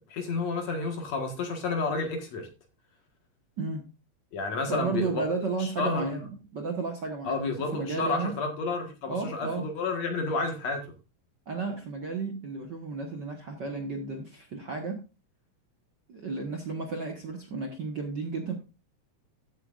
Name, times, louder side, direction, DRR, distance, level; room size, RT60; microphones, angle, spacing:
voice 1, 0.1-2.5 4.3-5.2 5.6-6.3 7.2-10.9, left 3 dB, 55° left, 4 dB, 2.6 m, -31 dB
voice 2, 4.7-8.3 9.1-9.7 11.5-15.0 16.1-18.5, right 4 dB, 55° right, 3 dB, 1.2 m, -33 dB
14.5 x 8.2 x 2.5 m, 0.29 s
omnidirectional pair, 3.9 m